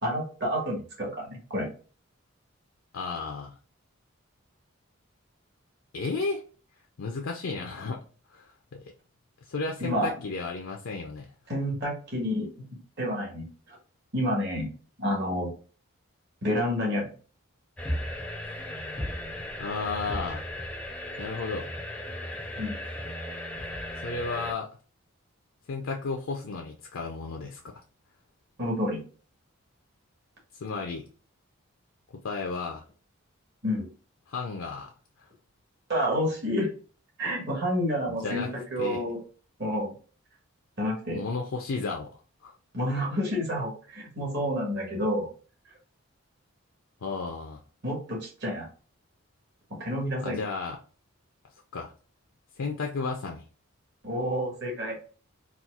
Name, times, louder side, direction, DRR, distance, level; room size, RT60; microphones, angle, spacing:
voice 1, 0.0-1.7 9.8-10.1 11.5-12.7 13.0-13.8 14.1-14.7 15.0-15.5 16.4-17.1 22.6-22.8 28.6-29.0 33.6-33.9 35.9-36.7 37.2-39.2 39.6-39.9 40.8-41.2 42.7-45.3 47.8-48.7 49.7-50.4 54.0-55.0, equal, 55° right, -1 dB, 1.3 m, -29 dB
voice 2, 2.9-3.6 5.9-6.4 7.0-8.0 8.3-8.8 9.5-11.3 19.6-20.4 21.2-21.7 24.0-24.7 25.7-27.8 30.6-31.1 32.1-32.8 34.3-34.9 38.1-38.5 38.8-39.0 41.1-42.1 42.4-42.5 47.0-47.6 50.2-50.8 51.7-51.9 52.6-53.4, left 4 dB, 75° left, 2 dB, 0.5 m, -33 dB
sound 1, 17.8-24.5, left 1 dB, 5° left, 0.3 m, -36 dB
4.1 x 2.3 x 2.3 m, 0.38 s
head